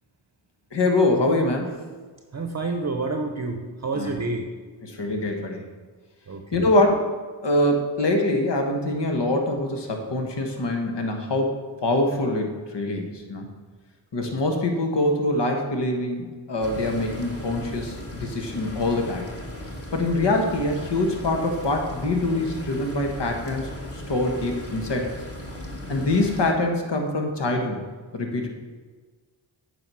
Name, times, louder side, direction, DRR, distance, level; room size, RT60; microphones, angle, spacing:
voice 1, 0.7-1.7 3.9-4.2 4.8-5.6 6.5-7.1 7.4-11.6 11.8-13.4 14.1-19.2 19.9-25.2 25.9-27.8 28.1-28.5, left 2 dB, 60° left, 3 dB, 1.5 m, -24 dB
voice 2, 2.3-4.5 6.3-6.7, right 3 dB, 35° right, 4 dB, 0.8 m, -29 dB
sound 1, 16.6-26.5, equal, 30° left, 2.0 m, -37 dB
8.5 x 4.8 x 6.1 m, 1.4 s
cardioid pair, 50°, 48 cm